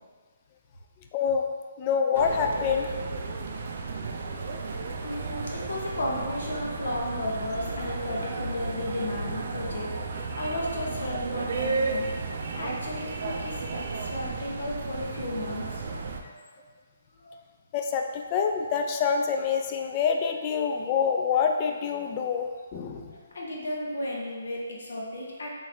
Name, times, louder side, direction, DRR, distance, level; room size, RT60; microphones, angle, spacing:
voice 1, 1.1-1.5 1.8-2.9 17.7-23.1, left 6 dB, 25° left, 4 dB, 0.3 m, -26 dB
sound 1, 2.1-16.2, right 3 dB, 50° right, 0.4 m, -33 dB
voice 2, 3.4-4.4 5.0-12.1 12.5-16.4 17.2-17.3 23.1-25.5, left 1 dB, 75° left, -3 dB, 0.9 m, -34 dB
3.7 x 3.1 x 2.7 m, 1.5 s
hypercardioid pair, 160°, 0 cm